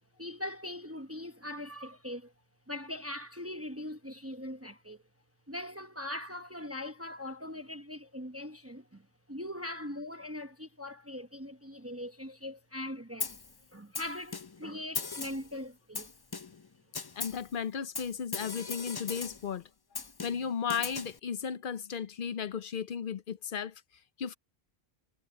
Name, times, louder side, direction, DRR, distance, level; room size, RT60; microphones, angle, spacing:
voice 1, 0.2-2.3 2.7-5.0 5.5-13.4 13.7-16.1, left 1 dB, 15° right, 0.9 m, -41 dB
Snare drum, 13.2-13.5 13.9-14.7 14.9-15.5 15.9-16.7 16.9-17.5 17.9-19.5 19.9-21.2, left 4 dB, 30° left, 0.5 m, -39 dB
voice 2, 17.2-19.6 20.2-23.7 24.2-24.3, left 7 dB, 60° left, 0.8 m, -35 dB
omnidirectional pair, 1.1 m